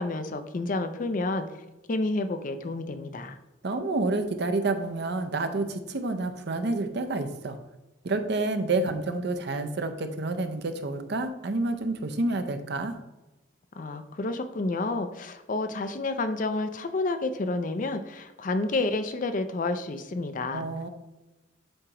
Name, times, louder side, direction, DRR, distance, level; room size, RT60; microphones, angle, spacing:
voice 1, 0.0-1.5 1.9-3.4 13.8-20.7, left 2 dB, 40° left, 9 dB, 0.4 m, -30 dB
voice 2, 3.6-7.6 8.0-13.0 20.5-20.9, right 2 dB, 55° right, 8 dB, 0.6 m, -29 dB
7.8 x 2.9 x 4.8 m, 1.0 s
head